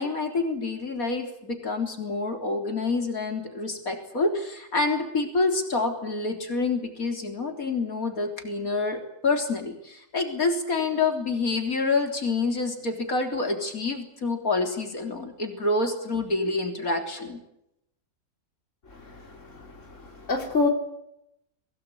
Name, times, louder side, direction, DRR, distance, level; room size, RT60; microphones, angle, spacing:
voice 1, 0.0-17.4, left 3 dB, 75° left, 4 dB, 4.1 m, -27 dB
voice 2, 18.9-20.7, left 3 dB, 60° left, 2 dB, 3.9 m, -29 dB
26.0 x 19.0 x 8.6 m, 0.80 s
omnidirectional pair, 1.5 m